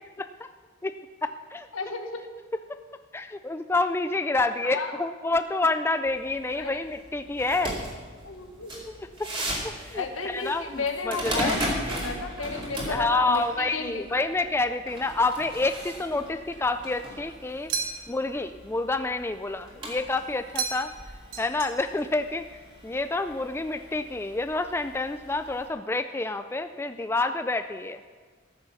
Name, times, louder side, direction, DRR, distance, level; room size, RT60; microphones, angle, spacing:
voice 1, 0.2-0.5 0.8-1.0 1.5-1.7 2.7-2.8 3.1-7.8 8.9-9.0 9.4-11.5 12.9-17.7 18.1-20.9 21.4-22.5 22.8-28.0, left 3 dB, 10° left, 9 dB, 0.3 m, -28 dB
voice 2, 1.7-2.2 4.6-5.0 6.6-6.8 8.2-8.9 9.9-11.6 11.9-14.3, left 4 dB, 85° left, 5 dB, 1.3 m, -33 dB
sound 1, 6.1-25.7, equal, 25° right, 2.4 m, -38 dB
sound 2, 17.7-18.3 20.5-21.0 21.3-22.1, right 6 dB, 80° right, 1.1 m, -33 dB
14.0 x 6.5 x 7.1 m, 1.5 s
head